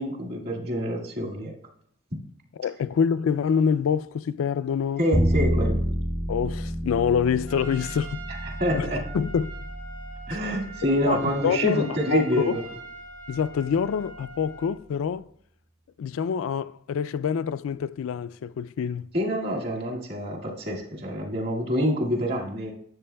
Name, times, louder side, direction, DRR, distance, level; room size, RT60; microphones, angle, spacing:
voice 1, 0.0-1.5 5.0-5.8 8.4-9.0 10.3-12.6 19.1-22.7, equal, 50° right, 2.0 m, -27 dB
voice 2, 2.6-5.0 6.3-8.2 8.7-8.9 9.1-9.6 10.3-10.4 11.1-12.6 13.3-15.2 16.0-19.1, left 7 dB, 85° left, 0.3 m, -26 dB
Bowed string instrument, 5.1-11.3, equal, 10° right, 0.5 m, -29 dB
Trumpet, 7.5-14.8, right 3 dB, 80° right, 3.4 m, -43 dB
12.5 x 7.5 x 2.2 m
head